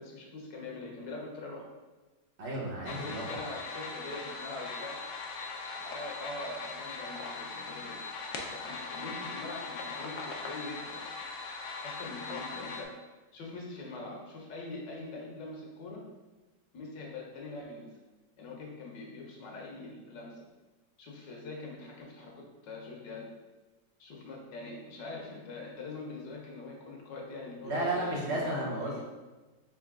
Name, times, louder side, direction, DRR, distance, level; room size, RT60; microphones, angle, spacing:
voice 1, 0.0-1.7 2.9-5.0 5.9-8.0 8.5-11.0 11.8-12.9 13.3-16.0 16.7-17.9 18.4-20.4 21.0-22.3 22.6-23.3 24.0-29.0, left 2 dB, 85° left, -1 dB, 1.6 m, -43 dB
voice 2, 2.4-3.4 27.6-29.0, right 1 dB, 45° right, -4 dB, 1.2 m, -33 dB
sound 1, 2.9-12.8, left 4 dB, 70° left, 1.1 m, -40 dB
4.3 x 3.3 x 3.7 m, 1.2 s
omnidirectional pair, 1.9 m